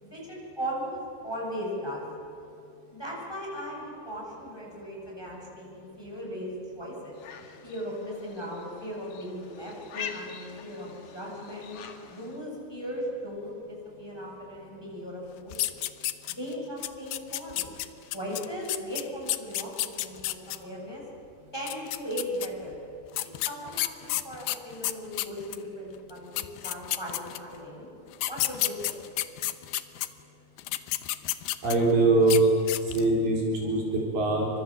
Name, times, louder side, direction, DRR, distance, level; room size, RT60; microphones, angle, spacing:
voice 1, 0.0-2.1 2.9-6.5 6.8-7.2 7.6-11.8 12.1-15.8 16.4-17.7 18.1-21.0 21.5-22.7 23.5-27.9 28.2-28.9, equal, 5° left, -3 dB, 7.2 m, -37 dB
sound 1, 7.1-12.4, left 7 dB, 55° left, 2.8 m, -44 dB
sound 2, 15.5-16.5 16.8-20.6 21.6-22.5 23.1-25.6 26.1-26.2 26.4-27.6 28.1-30.1 30.6-31.9 32.2-32.4 32.7-33.1, left 15 dB, 75° left, 2.7 m, -30 dB
voice 2, 31.6-32.5 32.8-34.5, right 2 dB, 55° right, -2 dB, 5.6 m, -23 dB
29.5 x 25.5 x 7.6 m, 2.9 s
omnidirectional pair, 4.7 m